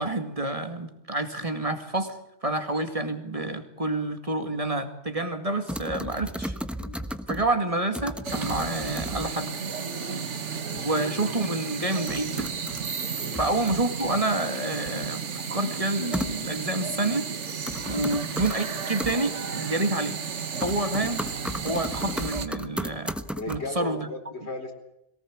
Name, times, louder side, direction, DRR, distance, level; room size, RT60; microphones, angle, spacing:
voice 1, 0.0-2.2 2.4-6.6 7.3-9.6 10.8-12.5 13.4-17.3 17.8-20.2 20.6-21.2 21.6-23.2 23.5-24.1, right 2 dB, 30° right, 7 dB, 2.3 m, -28 dB
sound 1, 5.6-6.1 6.5-7.2 7.5-8.2 8.6-9.3 9.7-10.4 10.8-11.6 11.9-12.6 13.0-13.7 14.2-15.0 15.5-16.2 16.7-17.5, left 2 dB, 40° left, 2.8 m, -47 dB
sound 2, 5.7-7.5 7.9-9.4 11.0-11.1 11.4-11.5 12.1-13.0 13.3-14.2 16.1-16.8 17.4-18.5 19.0-19.2 19.9-20.3 20.6-23.6, equal, ahead, 1.1 m, -34 dB
sound 3, 8.2-22.5, right 6 dB, 75° right, 1.7 m, -33 dB
voice 2, 23.4-24.7, left 2 dB, 60° left, 4 dB, 4.5 m, -36 dB
22.5 x 18.5 x 8.7 m, 0.82 s
omnidirectional pair, 1.2 m